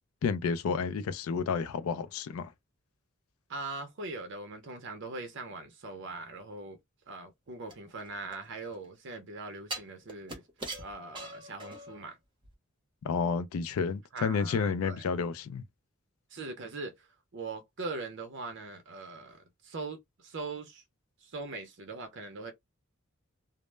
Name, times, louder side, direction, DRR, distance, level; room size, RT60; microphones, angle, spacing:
voice 1, 0.2-2.5 13.0-15.6, left 5 dB, 75° left, 0.3 m, -30 dB
voice 2, 3.5-6.8 7.1-10.4 10.8-12.2 14.1-15.0 16.3-17.1 17.3-20.8 21.2-22.5, right 3 dB, 55° right, 0.5 m, -41 dB
sound 1, 7.7-8.9 9.7-12.1 12.4-12.5, right 1 dB, 25° right, 0.7 m, -42 dB
2.0 x 2.0 x 3.1 m
head